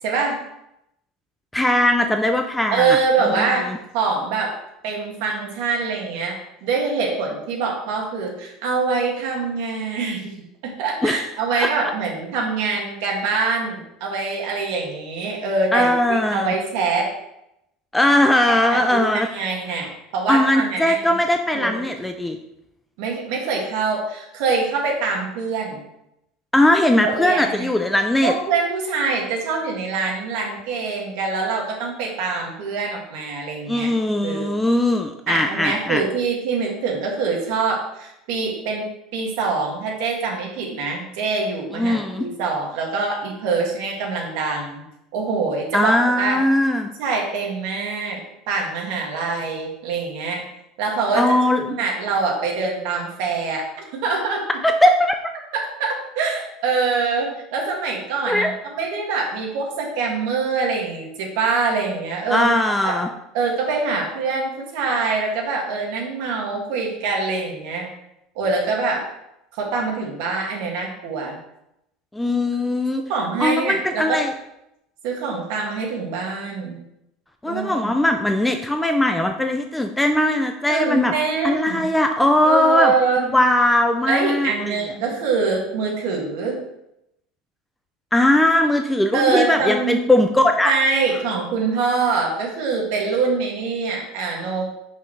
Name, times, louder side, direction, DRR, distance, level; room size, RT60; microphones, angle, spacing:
voice 1, 0.0-0.4 2.7-3.6 3.9-4.5 4.8-10.3 10.8-17.1 18.7-19.9 20.1-21.2 21.5-21.7 23.0-25.8 27.0-27.7 28.2-33.9 34.2-34.5 35.3-44.8 45.1-46.4 47.0-48.2 48.5-50.4 50.8-51.2 51.7-53.6 53.9-54.5 55.5-55.9 56.2-62.5 62.8-63.0 63.3-67.9 68.4-69.0 69.5-71.4 73.1-74.2 75.0-76.8 77.4-77.9 80.7-81.9 82.4-83.2 84.1-86.6 89.1-90.0 90.6-94.7, right 4 dB, 70° right, 0 dB, 2.1 m, -24 dB
voice 2, 1.5-3.0 3.2-3.8 11.0-11.2 11.5-11.7 15.7-16.5 17.9-19.3 20.3-22.4 26.5-28.3 33.7-36.0 41.7-42.3 45.7-46.9 51.1-51.7 54.6-55.2 58.3-58.5 62.3-63.1 72.1-73.0 73.4-74.3 77.4-81.1 81.4-82.9 83.2-84.8 88.1-90.7, left 1 dB, 5° left, 5 dB, 0.4 m, -19 dB
9.9 x 5.6 x 3.2 m, 0.83 s
cardioid pair, 160°, 0 cm